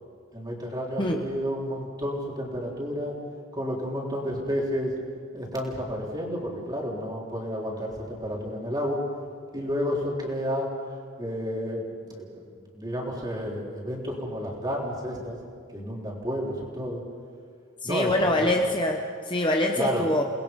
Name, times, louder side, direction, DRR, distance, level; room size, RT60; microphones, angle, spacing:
voice 1, 0.3-3.1 3.5-4.9 5.3-9.0 9.5-10.7 11.2-12.5 12.7-15.4 15.7-17.0 17.8-18.5 19.8-20.0, equal, 20° right, -2 dB, 3.7 m, -31 dB
voice 2, 17.8-20.2, left 1 dB, 20° left, 2 dB, 1.1 m, -25 dB
29.5 x 20.5 x 5.3 m, 2.1 s
head